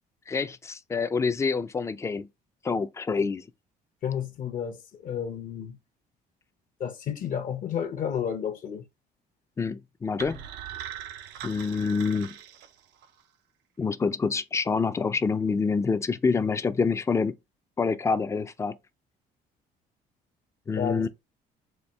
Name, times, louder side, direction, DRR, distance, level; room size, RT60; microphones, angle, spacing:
voice 1, 0.3-2.3 2.6-3.5 9.6-10.4 11.4-12.4 13.8-17.4 17.8-18.8 20.7-21.1, left 5 dB, 15° left, 0.4 m, -27 dB
voice 2, 4.0-5.8 6.8-8.8 20.8-21.1, left 8 dB, 55° left, 0.7 m, -31 dB
sound 1, 10.2-13.2, right 10 dB, 85° right, 0.5 m, -41 dB
4.3 x 2.3 x 3.4 m
cardioid pair, 110°, 17 cm